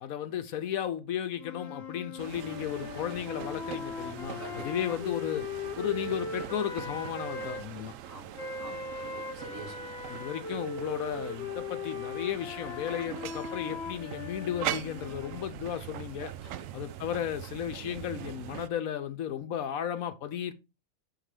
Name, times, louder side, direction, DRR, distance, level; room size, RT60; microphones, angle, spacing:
voice 1, 0.0-5.4 5.8-7.9 10.1-16.3 16.7-20.5, left 9 dB, 75° left, 1.1 m, -34 dB
sound 1, 1.4-7.6 8.3-15.4, left 4 dB, 50° left, 1.2 m, -39 dB
sound 2, 2.2-18.7, right 12 dB, 70° right, 0.9 m, -42 dB
voice 2, 4.4-4.7 7.7-10.2 16.4-16.8, right 2 dB, 40° right, 4.2 m, -48 dB
6.6 x 3.8 x 4.8 m
omnidirectional pair, 1.5 m